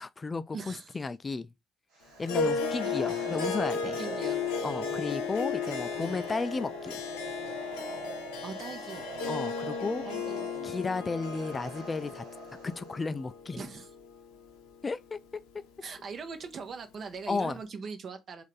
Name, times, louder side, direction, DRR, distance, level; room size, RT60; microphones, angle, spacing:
voice 1, 0.0-1.5 2.2-4.0 4.6-7.0 9.3-10.1 10.6-12.2 12.6-13.6 14.8-15.2 17.3-17.6, left 4 dB, 30° left, 0.3 m, -33 dB
voice 2, 0.5-1.0 2.8-3.3 4.0-5.4 5.9-6.2 8.4-9.0 10.0-10.8 13.6-13.9 15.8-18.4, right 5 dB, 50° right, 1.0 m, -42 dB
sound 1, 1.9-13.1, right 3 dB, 80° right, 1.2 m, -43 dB
Harp, 2.2-14.8, left 5 dB, 85° left, 0.8 m, -35 dB
4.1 x 2.6 x 3.3 m
hypercardioid pair, 55°, 0 cm